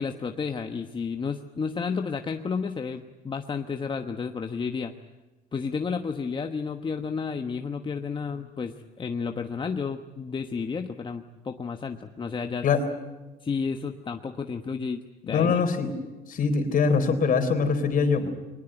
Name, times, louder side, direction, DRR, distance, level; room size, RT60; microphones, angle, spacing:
voice 1, 0.0-4.9 5.5-12.7 13.4-15.6, left 5 dB, 30° left, 6 dB, 1.1 m, -31 dB
voice 2, 15.3-15.9 16.3-18.3, left 5 dB, 55° left, 7 dB, 3.9 m, -23 dB
22.5 x 20.0 x 9.0 m, 1.1 s
cardioid pair, 110°, 17 cm